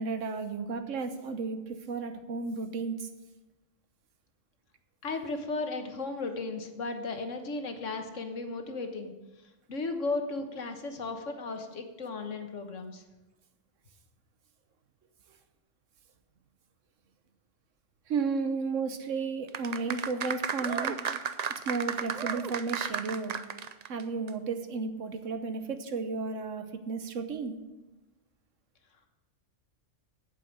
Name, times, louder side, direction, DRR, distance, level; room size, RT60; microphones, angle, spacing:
voice 1, 0.0-3.1 18.1-21.0 21.6-23.4 23.9-27.6, right 4 dB, 80° right, 8 dB, 1.3 m, -33 dB
voice 2, 5.0-9.1 9.7-13.0, left 3 dB, 80° left, 5 dB, 1.6 m, -35 dB
sound 1, 19.5-24.0 24.3-24.4, right 7 dB, 55° right, 0.4 m, -33 dB
8.6 x 7.5 x 8.9 m, 1.1 s
omnidirectional pair, 1.3 m